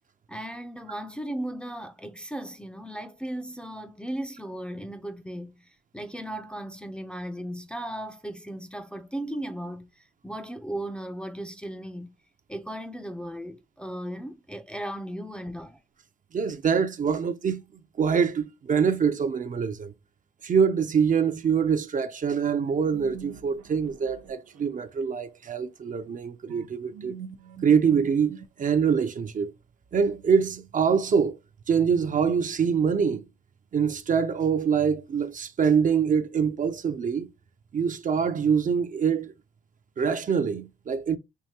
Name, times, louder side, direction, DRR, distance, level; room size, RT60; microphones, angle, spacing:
voice 1, 0.3-12.2 12.5-15.8, right 1 dB, 5° left, 0.5 m, -36 dB
voice 2, 16.3-17.6 18.0-19.9 20.4-27.1 27.6-29.5 29.9-31.4 31.7-33.2 33.7-37.3 37.7-39.3 40.0-41.2, right 6 dB, 40° right, 0.6 m, -24 dB
sound 1, 22.5-25.1 26.5-28.9, right 7 dB, 85° right, 0.7 m, -45 dB
4.7 x 2.7 x 2.8 m
cardioid pair, 90°, 20 cm